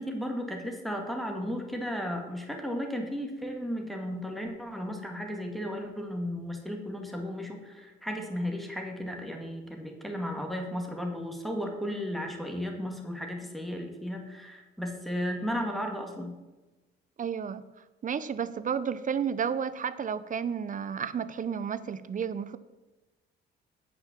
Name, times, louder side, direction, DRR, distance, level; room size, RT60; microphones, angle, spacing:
voice 1, 0.0-16.3, equal, ahead, 2 dB, 2.0 m, -34 dB
voice 2, 17.2-17.6 18.0-22.6, right 7 dB, 40° right, 15 dB, 0.6 m, -32 dB
8.6 x 5.9 x 7.1 m, 1.1 s
cardioid pair, 90°, 20 cm